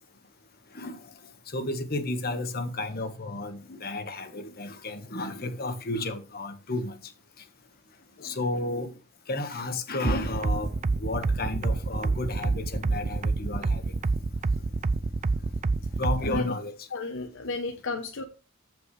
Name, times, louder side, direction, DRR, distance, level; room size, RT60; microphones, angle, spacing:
voice 1, 1.5-6.9 8.2-8.9 9.3-13.8 16.0-16.9, left 2 dB, 45° left, 1.4 m, -32 dB
sound 1, 10.0-16.4, right 3 dB, 30° right, 0.4 m, -27 dB
voice 2, 16.9-18.2, left 3 dB, 60° left, 0.9 m, -33 dB
14.5 x 5.2 x 3.2 m
head